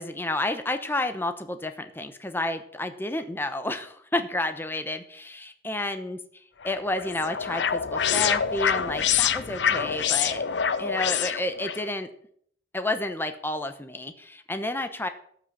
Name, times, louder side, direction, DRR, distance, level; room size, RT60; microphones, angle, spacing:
voice 1, 0.0-6.2 6.6-10.4 10.8-12.1 12.7-15.1, left 2 dB, 10° left, 8 dB, 0.9 m, -30 dB
sound 1, 6.6-11.8, left 8 dB, 75° left, 0.7 m, -26 dB
13.0 x 6.2 x 8.2 m, 0.64 s
head